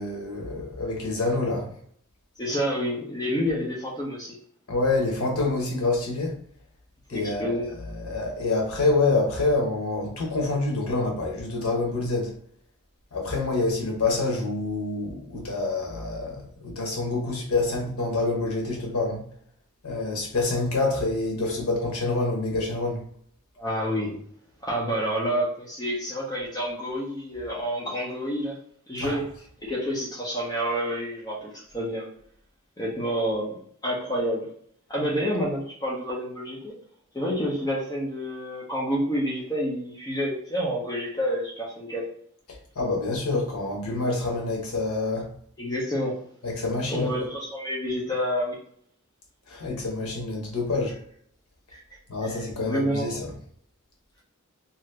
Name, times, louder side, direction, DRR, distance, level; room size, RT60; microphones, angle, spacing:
voice 1, 0.0-1.7 4.7-6.4 7.1-12.3 13.1-19.2 19.8-23.0 29.0-29.2 42.8-45.3 46.4-47.1 49.5-50.9 52.1-53.3, left 3 dB, 80° left, 0 dB, 1.0 m, -27 dB
voice 2, 2.4-4.4 7.1-7.7 23.6-24.1 24.6-28.6 28.9-29.2 29.6-32.1 32.8-33.5 33.8-34.5 34.9-36.7 37.1-42.1 45.6-46.2 46.9-48.6 51.7-51.8 52.2-53.2, equal, 20° left, -5 dB, 0.6 m, -28 dB
2.8 x 2.5 x 3.2 m, 0.63 s
head